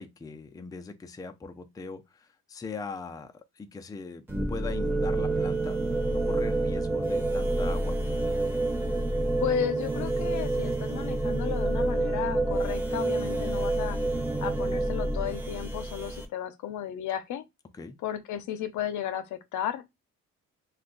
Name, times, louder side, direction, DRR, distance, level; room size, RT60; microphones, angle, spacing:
voice 1, 0.0-8.0 17.8-17.9, left 4 dB, 10° left, 0.4 m, -40 dB
sound 1, 4.3-16.3, right 2 dB, 5° right, 0.8 m, -28 dB
voice 2, 9.4-14.0 14.4-17.4 18.0-19.9, left 11 dB, 75° left, 0.6 m, -34 dB
2.5 x 2.3 x 3.7 m
cardioid pair, 90°, 30 cm